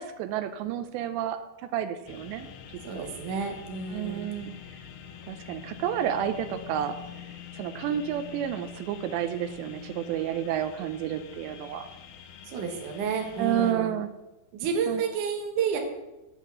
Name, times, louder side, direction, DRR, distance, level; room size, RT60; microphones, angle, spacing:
voice 1, 0.0-1.4 1.7-2.5 3.0-3.1 3.9-4.5 5.3-6.9 7.5-11.9 13.4-14.1 14.9-15.0, right 10 dB, 80° right, 10 dB, 2.6 m, -30 dB
sound 1, 2.1-13.7, left 9 dB, 85° left, 2.1 m, -45 dB
voice 2, 2.8-4.3 12.5-13.9 14.5-15.8, right 6 dB, 65° right, 2 dB, 2.2 m, -30 dB
8.2 x 5.9 x 7.8 m, 0.99 s
omnidirectional pair, 5.4 m